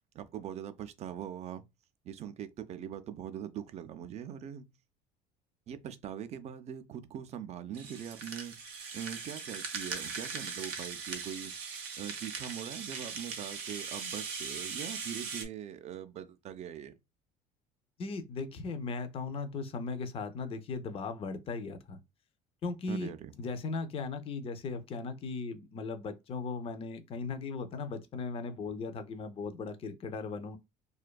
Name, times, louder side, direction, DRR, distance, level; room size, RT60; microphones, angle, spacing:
voice 1, 0.1-1.7 2.0-4.7 5.7-8.6 8.9-11.5 12.0-17.0 22.9-23.3, right 9 dB, 40° right, 0.4 m, -42 dB
Rattle (instrument), 7.7-15.5, right 5 dB, 90° right, 0.6 m, -40 dB
voice 2, 18.0-22.0 22.6-23.1 23.4-30.6, left 4 dB, 35° left, 0.4 m, -37 dB
2.5 x 2.2 x 2.2 m
supercardioid pair, 105°, 17 cm